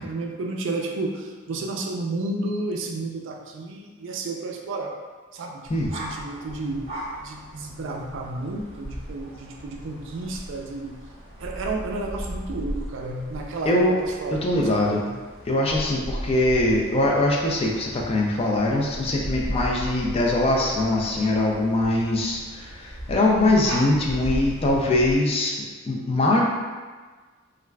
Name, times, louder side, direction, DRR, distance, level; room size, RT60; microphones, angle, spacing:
voice 1, 0.0-5.0 5.3-6.9 7.2-11.0 11.4-15.1, right 2 dB, 65° right, 2 dB, 0.3 m, -32 dB
sound 1, 5.7-25.2, equal, 25° right, 0.7 m, -36 dB
voice 2, 13.7-14.0 14.4-15.0 15.5-26.4, left 1 dB, 30° left, -2 dB, 0.3 m, -22 dB
3.2 x 2.3 x 2.2 m, 1.4 s
head